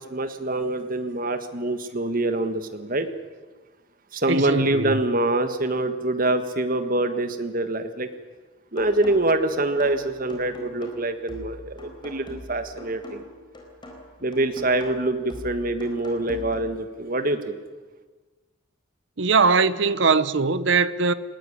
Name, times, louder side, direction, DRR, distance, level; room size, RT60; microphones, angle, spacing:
voice 1, 0.0-3.1 4.1-8.1 8.7-13.2 14.2-17.6, right 2 dB, 45° right, 1.7 m, -25 dB
voice 2, 4.3-5.0 19.2-21.1, right 4 dB, 60° right, 0.9 m, -21 dB
sound 1, 8.8-16.8, left 1 dB, 25° left, 4.1 m, -41 dB
20.0 x 17.5 x 10.0 m
head